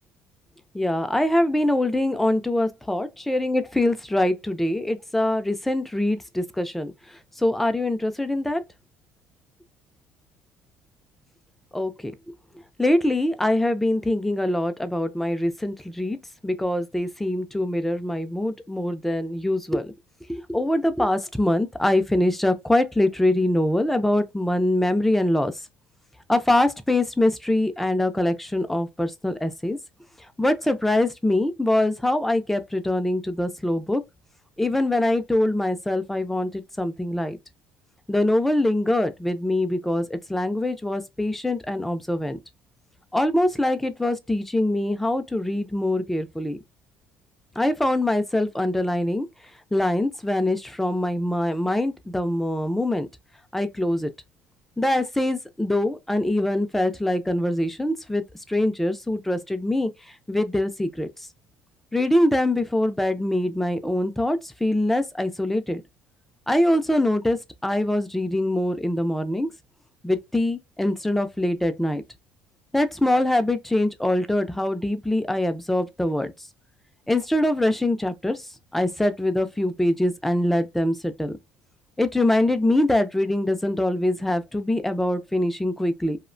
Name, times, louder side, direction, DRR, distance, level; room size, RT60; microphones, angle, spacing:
voice 1, 0.7-6.9 7.4-8.6 11.7-12.1 12.8-16.2 16.4-19.9 20.3-25.5 26.3-29.8 30.4-34.0 34.6-37.4 38.1-42.4 43.1-46.6 47.6-49.3 49.7-53.1 53.5-54.1 54.8-59.9 60.3-61.1 61.9-65.8 66.5-69.5 70.0-72.0 72.7-76.3 77.1-78.4 78.7-81.3 82.0-86.2, left 1 dB, 5° left, 0.4 m, -23 dB
2.8 x 2.1 x 2.5 m
cardioid pair, 115°, 4 cm